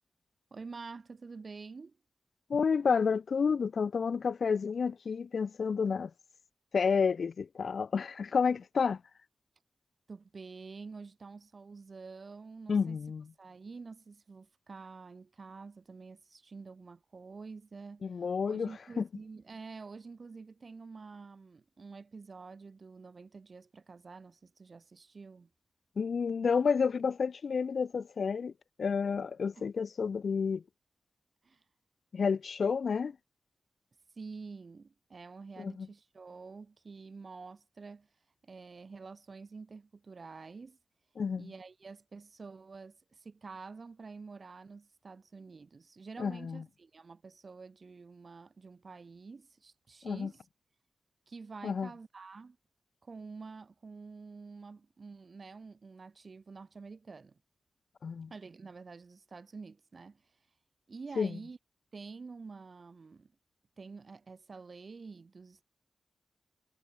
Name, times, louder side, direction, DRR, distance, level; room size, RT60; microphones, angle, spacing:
voice 1, 0.5-2.0 10.1-13.0 13.4-18.1 18.5-25.5 29.6-29.7 31.4-31.6 34.2-38.1 38.4-40.8 41.4-50.4 51.3-52.6 53.0-57.4 58.3-60.2 60.9-61.6 61.9-63.3 63.8-65.6, right 4 dB, 50° right, 1.9 m, -48 dB
voice 2, 2.5-6.1 6.7-9.0 12.7-13.2 18.0-19.1 26.0-28.5 28.8-30.6 32.1-33.2 35.6-35.9 41.2-41.5 46.2-46.6 50.0-50.3 51.6-51.9 58.0-58.3 61.2-61.3, left 5 dB, 70° left, 0.5 m, -30 dB
wide cardioid pair, 105°, 0 cm